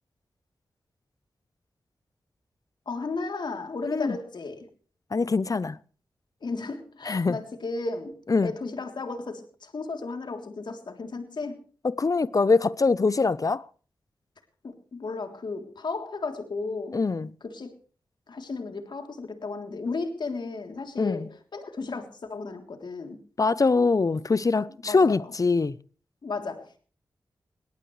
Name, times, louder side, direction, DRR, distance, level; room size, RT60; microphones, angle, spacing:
voice 1, 2.8-4.6 6.4-8.1 8.4-11.6 14.6-17.0 17.4-17.7 18.3-23.2 24.9-25.1 26.2-26.8, left 3 dB, 70° left, 3.4 m, -34 dB
voice 2, 3.9-4.2 5.1-5.8 7.0-7.4 8.3-8.5 11.8-13.6 16.9-17.3 21.0-21.3 23.4-25.8, left 4 dB, 45° left, 0.7 m, -23 dB
22.5 x 18.5 x 3.3 m
cardioid pair, 40°, 8 cm